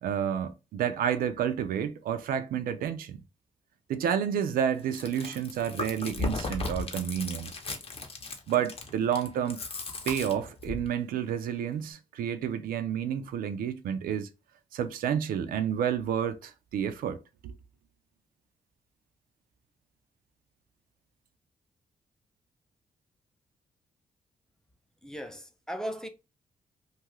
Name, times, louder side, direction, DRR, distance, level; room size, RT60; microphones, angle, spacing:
voice 1, 0.0-3.2 3.9-7.5 8.5-9.6 10.1-14.3 14.7-17.5, right 9 dB, 85° right, 0.4 m, -30 dB
Chewing mastication, 4.8-10.9, left 3 dB, 40° left, 0.8 m, -36 dB
voice 2, 25.0-26.1, equal, 5° left, 0.5 m, -37 dB
2.7 x 2.3 x 3.0 m
cardioid pair, 90°, 15 cm